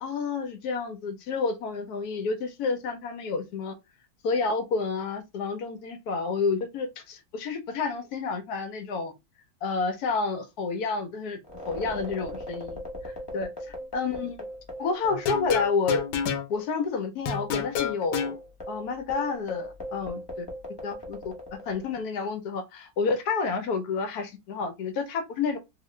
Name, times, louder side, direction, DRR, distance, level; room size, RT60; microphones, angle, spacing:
voice 1, 0.0-3.7 4.2-9.1 9.6-11.4 11.7-13.5 13.9-14.4 14.8-16.0 16.5-18.4 18.7-20.5 20.8-21.3 21.7-25.6, left 4 dB, 70° left, 1.0 m, -29 dB
sound 1, 11.4-16.3 16.5-16.7 17.3-22.0, equal, 20° left, 0.8 m, -39 dB
sound 2, 15.1-16.5 17.3-18.3, left 8 dB, 90° left, 1.4 m, -29 dB
2.9 x 2.4 x 3.1 m
omnidirectional pair, 2.0 m